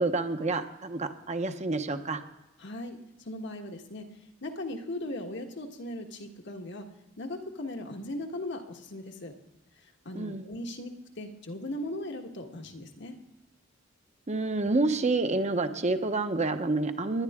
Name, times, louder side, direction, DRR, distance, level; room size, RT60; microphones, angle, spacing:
voice 1, 0.0-2.2 10.1-10.5 14.3-17.2, right 3 dB, 35° right, 8 dB, 0.9 m, -28 dB
voice 2, 2.6-3.0 3.3-4.1 4.4-6.9 7.2-9.3 10.0-13.1, left 1 dB, 65° left, 4 dB, 1.5 m, -38 dB
19.0 x 11.5 x 3.6 m, 0.97 s
head